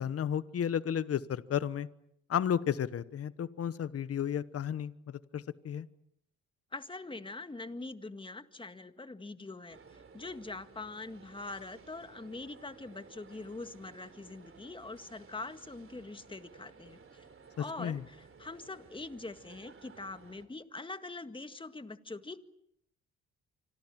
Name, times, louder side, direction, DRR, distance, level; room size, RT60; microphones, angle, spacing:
voice 1, 0.0-1.9 2.3-5.9 17.6-18.0, left 9 dB, 50° left, 15 dB, 1.2 m, -33 dB
voice 2, 6.7-17.3 17.6-22.4, left 3 dB, 15° left, 10 dB, 1.8 m, -43 dB
sound 1, 9.7-20.5, right 5 dB, 45° right, 3.5 m, -56 dB
27.0 x 25.5 x 7.5 m, 0.75 s
cardioid pair, 90°, 30 cm